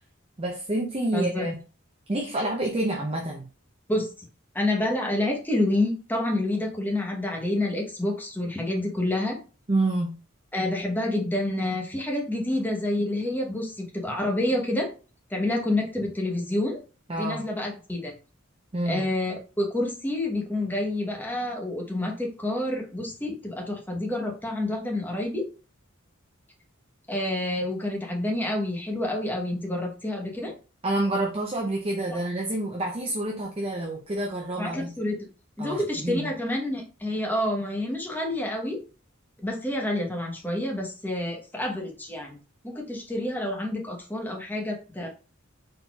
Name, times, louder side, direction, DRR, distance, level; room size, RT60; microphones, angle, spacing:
voice 1, 0.4-1.5 2.1-3.5 9.7-10.1 17.1-17.4 18.7-19.0 30.8-34.9 35.6-36.3, right 1 dB, 30° right, 0 dB, 0.6 m, -28 dB
voice 2, 1.1-1.5 3.9-4.1 4.5-9.4 10.5-14.9 15.3-16.8 17.1-18.1 18.8-25.4 27.1-30.5 32.1-32.2 34.6-35.2 35.6-38.8 39.4-42.4 42.6-45.1, left 1 dB, 10° left, 0 dB, 1.0 m, -28 dB
4.2 x 3.9 x 2.3 m, 0.34 s
head